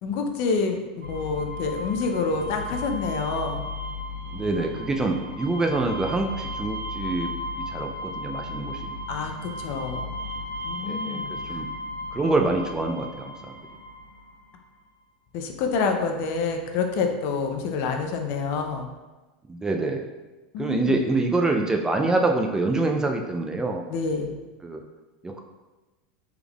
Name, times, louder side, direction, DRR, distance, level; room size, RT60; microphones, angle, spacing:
voice 1, 0.0-3.6 9.1-10.1 10.6-11.6 15.3-18.9 20.5-21.0 23.9-24.3, left 4 dB, 55° left, 4 dB, 0.5 m, -27 dB
sound 1, 1.0-14.4, left 1 dB, 80° right, 1.1 m, -35 dB
voice 2, 4.3-7.3 7.6-9.0 10.9-11.7 12.1-13.5 19.5-20.1 20.6-23.8 24.6-24.8 25.2-25.4, right 2 dB, 15° right, 3 dB, 0.3 m, -26 dB
3.4 x 3.4 x 2.3 m, 1.2 s
hypercardioid pair, 105°, 5 cm